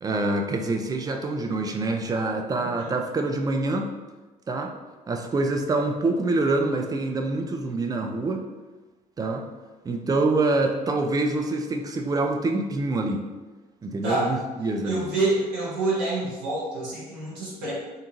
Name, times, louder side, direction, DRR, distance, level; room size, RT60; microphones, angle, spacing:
voice 1, 0.0-3.9 4.5-4.7 5.1-8.5 9.2-9.4 9.8-13.2 13.8-15.0, right 2 dB, 20° right, 3 dB, 0.3 m, -26 dB
voice 2, 2.6-2.9 14.0-14.3 14.8-17.7, right 2 dB, 60° right, -7 dB, 0.9 m, -27 dB
2.6 x 2.5 x 2.5 m, 1.2 s
figure-of-eight pair, 50°, 20 cm